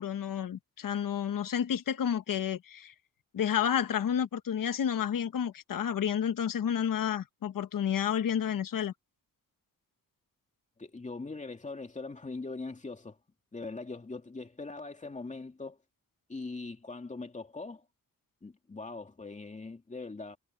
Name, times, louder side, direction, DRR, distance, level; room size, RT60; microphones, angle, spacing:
voice 1, 0.0-2.9 3.3-8.9, left 8 dB, 70° left, 1.3 m, -30 dB
voice 2, 10.8-13.2 13.5-15.8 16.3-17.8 18.4-20.4, left 3 dB, 20° left, 2.6 m, -41 dB
wide cardioid pair, 135°, 35 cm